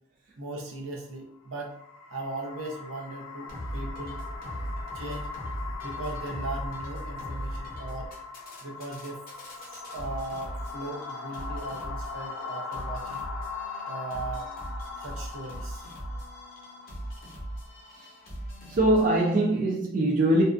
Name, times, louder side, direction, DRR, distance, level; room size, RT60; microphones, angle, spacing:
voice 1, 0.4-1.8 2.1-4.2 4.9-5.3 5.8-8.1 8.6-9.2 9.7-13.2 13.8-14.5 15.0-15.9, right 2 dB, 80° right, 0.6 m, -38 dB
sound 1, 1.5-18.6, left 4 dB, 85° left, 0.3 m, -40 dB
sound 2, 3.5-19.4, right 1 dB, 45° left, 0.7 m, -39 dB
voice 2, 18.7-20.4, right 1 dB, 40° right, 0.4 m, -23 dB
2.6 x 2.2 x 2.4 m
head